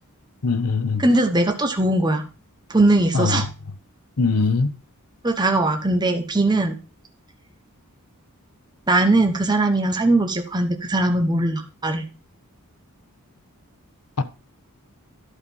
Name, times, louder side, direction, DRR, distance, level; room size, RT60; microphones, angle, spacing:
voice 1, 0.4-1.0 3.1-3.4 4.2-4.7 14.2-14.3, left 4 dB, 90° left, 0.9 m, -21 dB
voice 2, 1.0-2.2 2.7-3.5 5.2-6.8 8.9-12.0, right 2 dB, 20° right, 1.1 m, -20 dB
11.5 x 4.1 x 5.4 m
head